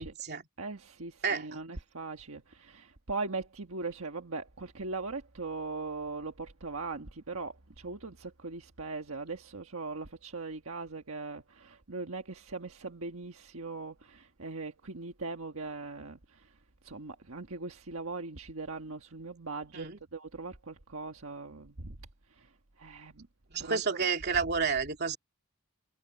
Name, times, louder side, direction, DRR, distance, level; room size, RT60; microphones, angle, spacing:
voice 1, 0.0-0.5 1.2-1.6 19.7-20.0 23.5-25.2, right 5 dB, 50° right, 2.8 m, -31 dB
voice 2, 0.6-16.4 16.8-22.0 22.4-22.5 22.8-23.3 23.6-24.0, right 3 dB, 75° right, 1.5 m, -40 dB
head